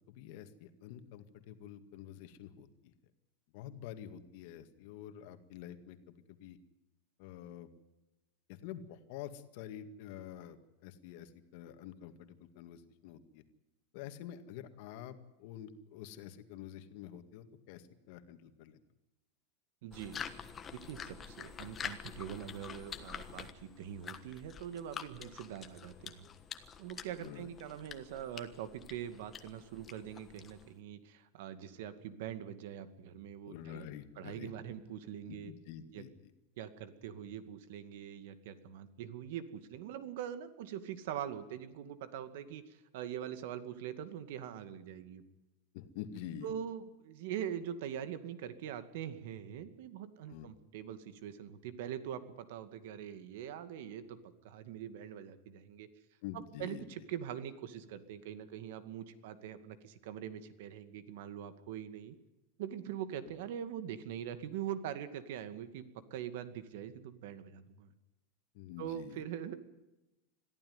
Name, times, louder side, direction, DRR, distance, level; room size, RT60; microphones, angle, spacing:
voice 1, 0.1-2.9 3.5-6.6 7.2-7.7 8.5-13.4 13.9-18.8 27.2-27.5 33.4-34.7 35.3-36.3 45.7-46.5 50.3-50.5 56.2-56.8 68.5-69.2, left 10 dB, 55° left, 9 dB, 2.0 m, -48 dB
voice 2, 19.8-20.2 20.7-26.3 26.8-33.9 34.2-35.5 35.9-36.0 36.6-45.2 46.4-55.9 56.3-62.2 62.6-67.9 68.8-69.6, right 9 dB, 65° right, 11 dB, 2.2 m, -43 dB
sound 1, 19.9-30.8, left 7 dB, 20° left, 1.3 m, -47 dB
22.5 x 14.5 x 9.6 m, 1.0 s
supercardioid pair, 165°, 0 cm